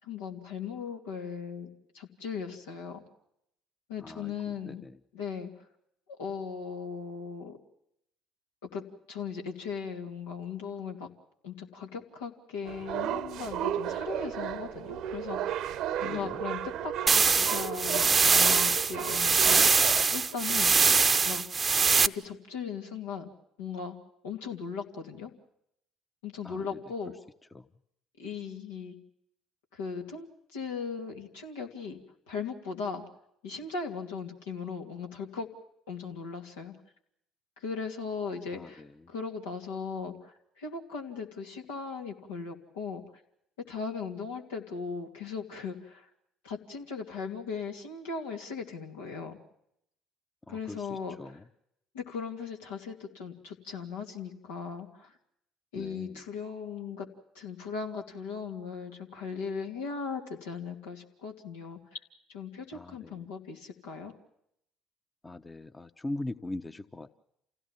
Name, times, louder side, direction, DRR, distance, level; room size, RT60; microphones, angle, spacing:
voice 1, 0.0-1.7 1.9-3.0 3.9-4.8 5.1-5.5 6.2-7.6 8.6-11.1 11.4-15.6 16.0-19.8 20.1-20.7 21.2-21.4 22.0-23.3 23.6-24.0 24.2-25.3 26.2-27.1 28.2-29.0 29.7-32.0 32.3-33.0 33.4-35.5 35.9-36.7 37.6-43.0 43.7-46.1 46.4-49.4 50.5-51.4 51.9-55.2 55.7-57.1 57.3-61.8 62.3-64.1, left 5 dB, 80° left, 1 dB, 2.7 m, -38 dB
sound 1, 12.6-20.0, right 10 dB, 65° right, 0.9 m, -34 dB
sound 2, 17.1-22.1, right 5 dB, 30° right, 0.8 m, -23 dB
voice 2, 50.5-51.3 55.8-56.1 62.7-63.0 65.2-67.2, left 2 dB, 20° left, 10 dB, 1.0 m, -40 dB
28.5 x 16.5 x 7.4 m, 0.77 s
hypercardioid pair, 55°, 0 cm